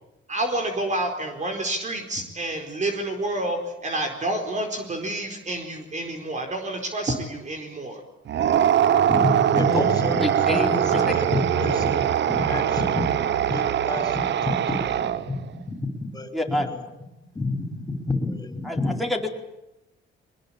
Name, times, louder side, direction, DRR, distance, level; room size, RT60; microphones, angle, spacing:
voice 1, 0.3-8.0, right 1 dB, 35° right, 4 dB, 4.5 m, -29 dB
sound 1, 8.3-15.4, right 10 dB, 65° right, 1.1 m, -22 dB
voice 2, 9.1-15.0 15.3-15.4 15.7-15.8 16.1-16.8 17.4-18.9, left 2 dB, 20° left, 5 dB, 5.4 m, -29 dB
voice 3, 10.2-11.0 16.3-16.7 18.6-19.3, left 1 dB, ahead, -1 dB, 4.5 m, -27 dB
23.5 x 20.5 x 8.9 m, 0.94 s
cardioid pair, 90°, 20 cm